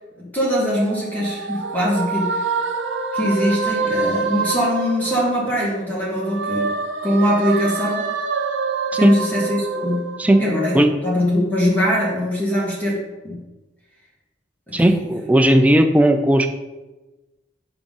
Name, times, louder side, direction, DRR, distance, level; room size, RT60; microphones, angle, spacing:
voice 1, 0.2-2.4 3.1-6.7 7.0-8.1 8.9-10.0 10.4-13.4 14.7-15.0, equal, 10° left, -6 dB, 1.4 m, -22 dB
sound 1, 0.7-5.7 6.0-10.8, right 4 dB, 85° right, 0.6 m, -26 dB
voice 2, 14.7-16.5, right 1 dB, 10° right, 6 dB, 0.4 m, -15 dB
6.2 x 4.8 x 3.8 m, 1.1 s
head